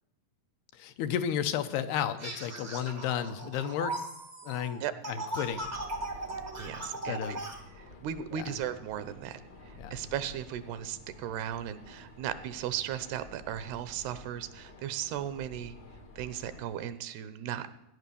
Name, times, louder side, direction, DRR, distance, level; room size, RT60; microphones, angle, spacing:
voice 1, 0.7-4.0 4.4-5.7 7.0-7.4 8.3-8.6 9.8-9.9, left 9 dB, 75° left, 9 dB, 2.6 m, -33 dB
sound 1, 2.2-7.6, right 2 dB, 35° right, 0.6 m, -38 dB
sound 2, 5.4-16.8, left 1 dB, 60° left, 1.0 m, -51 dB
voice 2, 6.6-7.4 7.8-9.4 9.7-15.8 16.2-17.7, right 10 dB, 80° right, 13 dB, 2.8 m, -36 dB
17.5 x 10.0 x 6.9 m, 0.86 s
omnidirectional pair, 4.7 m